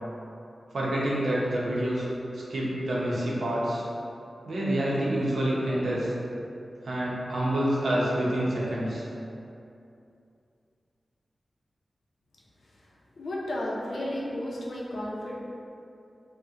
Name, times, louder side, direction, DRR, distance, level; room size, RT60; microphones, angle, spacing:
voice 1, 0.7-2.1 2.3-3.8 4.4-6.1 6.8-9.0, right 1 dB, 80° right, -6 dB, 0.7 m, -27 dB
voice 2, 13.2-15.3, left 1 dB, 70° left, -5 dB, 0.5 m, -33 dB
4.1 x 2.1 x 2.4 m, 2.6 s
wide cardioid pair, 130°, 0 cm